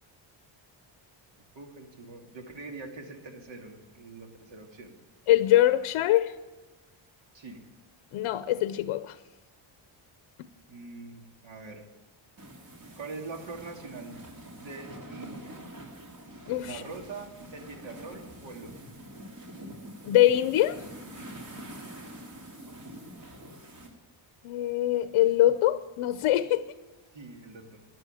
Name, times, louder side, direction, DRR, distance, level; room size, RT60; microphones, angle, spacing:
voice 1, 1.5-4.9 7.3-7.6 10.7-11.8 13.0-14.2 14.5-15.5 16.6-18.7 21.5-21.7 27.1-27.8, right 3 dB, 65° right, 3 dB, 2.7 m, -43 dB
voice 2, 5.3-6.3 8.1-9.2 16.5-16.8 20.1-20.8 24.4-26.6, left 13 dB, 90° left, 12 dB, 0.8 m, -23 dB
sound 1, 12.4-23.9, right 1 dB, 45° right, 3.1 m, -45 dB
12.5 x 11.0 x 9.0 m, 1.2 s
cardioid pair, 135°, 48 cm